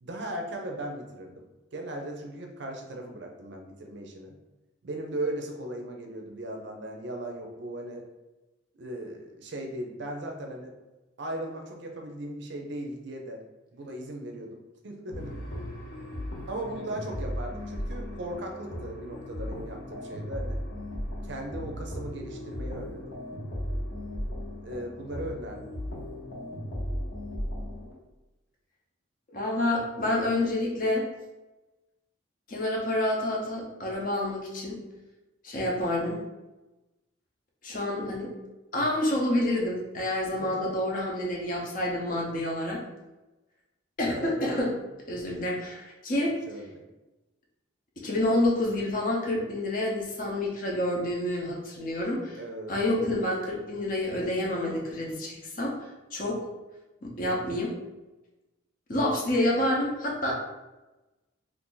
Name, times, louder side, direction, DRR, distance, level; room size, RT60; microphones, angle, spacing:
voice 1, 0.0-1.4 1.7-4.3 4.8-8.0 8.8-10.7 11.2-13.4 13.7-15.4 16.5-20.6 21.2-23.1 24.6-25.7 40.4-40.7 44.1-44.8 46.5-46.9 52.4-53.2, right 1 dB, 55° right, 2 dB, 0.5 m, -38 dB
sound 1, 15.1-27.9, left 1 dB, 70° left, 0.9 m, -36 dB
voice 2, 29.3-31.1 32.5-34.8 35.4-36.2 37.6-38.3 38.7-42.8 44.0-44.7 45.1-46.3 48.0-52.4 52.7-56.5 57.2-57.7 58.9-60.3, left 1 dB, 40° left, -2 dB, 0.7 m, -28 dB
2.6 x 2.5 x 3.7 m, 1.1 s
head